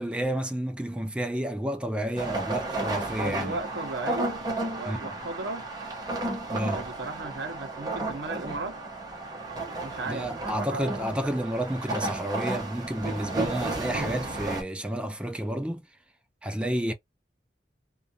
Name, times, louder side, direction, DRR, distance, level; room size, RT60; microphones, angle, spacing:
voice 1, 0.0-3.6 4.9-5.1 6.5-6.9 10.1-15.8 16.4-16.9, right 1 dB, 5° right, 0.3 m, -30 dB
sound 1, 2.2-14.6, right 2 dB, 20° right, 0.8 m, -33 dB
voice 2, 3.2-4.5 4.7-5.7 6.7-8.8 9.8-11.3, right 3 dB, 70° right, 0.6 m, -36 dB
2.5 x 2.2 x 2.6 m
head